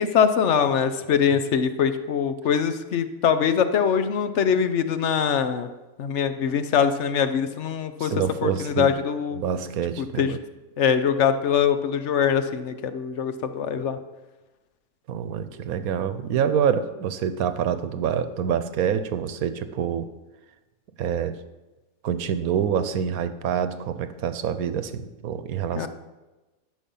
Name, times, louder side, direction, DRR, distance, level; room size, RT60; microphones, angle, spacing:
voice 1, 0.0-5.7 6.0-8.1 8.4-9.4 10.0-10.3 10.8-14.0 25.8-25.9, left 7 dB, 60° left, 10 dB, 1.0 m, -23 dB
voice 2, 8.0-8.9 9.4-10.4 15.1-20.1 21.0-21.4 22.0-25.9, right 8 dB, 90° right, 12 dB, 1.2 m, -26 dB
13.0 x 6.3 x 5.4 m, 1.1 s
omnidirectional pair, 1.5 m